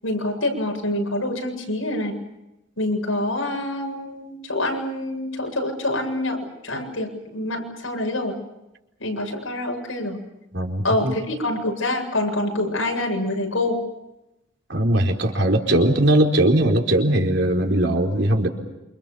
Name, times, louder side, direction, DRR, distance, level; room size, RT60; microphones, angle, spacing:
voice 1, 0.0-2.1 2.8-8.3 9.0-10.2 10.8-13.8, left 1 dB, 80° left, 2 dB, 7.8 m, -26 dB
voice 2, 10.5-11.1 14.7-18.5, right 1 dB, 60° right, 1 dB, 4.6 m, -19 dB
28.5 x 27.0 x 7.1 m, 0.94 s
head